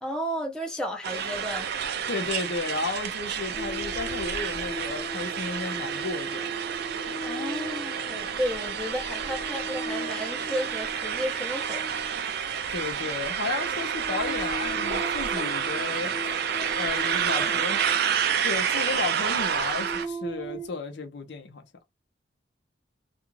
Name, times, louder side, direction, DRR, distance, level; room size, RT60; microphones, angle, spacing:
voice 1, 0.0-1.7 7.2-12.0 17.3-17.5 17.8-17.9, equal, 5° left, 0.6 m, -33 dB
sound 1, 1.0-20.1, right 8 dB, 55° right, 0.4 m, -29 dB
voice 2, 2.1-6.5 12.7-16.1 16.7-18.1 18.4-21.6, left 4 dB, 60° left, 0.6 m, -33 dB
sound 2, 3.6-18.7 19.3-20.7, right 1 dB, 85° left, 1.0 m, -38 dB
2.4 x 2.3 x 3.0 m
head